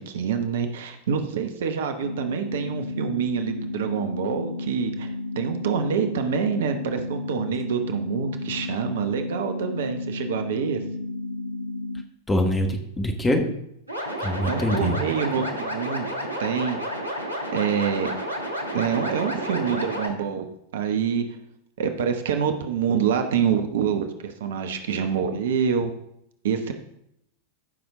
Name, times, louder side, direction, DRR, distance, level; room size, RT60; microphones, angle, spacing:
voice 1, 0.1-10.8 14.2-16.1 16.4-16.8 17.5-18.2 18.7-21.2 21.8-25.9 26.4-26.7, right 7 dB, 60° right, 7 dB, 1.0 m, -26 dB
sound 1, 2.0-12.0, left 2 dB, 75° left, 0.5 m, -32 dB
voice 2, 12.3-13.5 14.2-15.0, left 1 dB, 10° left, 4 dB, 1.5 m, -24 dB
sound 2, 13.9-20.1, equal, 85° right, 1.5 m, -31 dB
14.5 x 6.1 x 3.8 m, 0.76 s
figure-of-eight pair, 90°, 0 cm